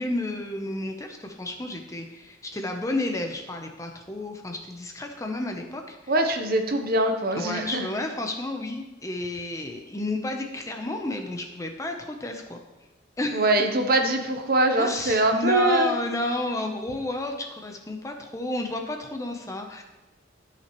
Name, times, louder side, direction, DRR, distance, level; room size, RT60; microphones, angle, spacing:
voice 1, 0.0-6.1 7.4-12.6 13.2-13.4 14.8-19.8, left 2 dB, 15° left, 3 dB, 0.7 m, -31 dB
voice 2, 6.1-7.8 13.3-15.9, right 2 dB, 50° right, 5 dB, 0.8 m, -23 dB
13.0 x 5.9 x 3.1 m, 1.1 s
head